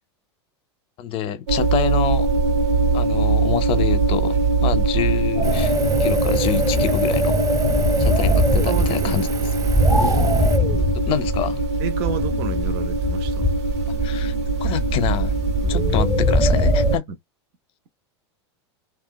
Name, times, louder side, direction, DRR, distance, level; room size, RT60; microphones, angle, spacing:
voice 1, 1.0-2.3 2.9-7.4 8.0-9.3 11.1-11.6 14.0-14.3 14.6-15.4 15.7-17.0, left 9 dB, 40° left, 0.6 m, -27 dB
sound 1, 1.5-17.0, right 3 dB, 75° right, 1.1 m, -22 dB
sound 2, 5.4-17.0, left 1 dB, 5° right, 0.8 m, -22 dB
Engine, 5.4-10.6, right 8 dB, 25° right, 0.3 m, -30 dB
voice 2, 8.6-9.3 11.8-13.5 15.6-15.8, right 6 dB, 60° right, 0.7 m, -30 dB
2.9 x 2.3 x 2.2 m
hypercardioid pair, 110°, 15 cm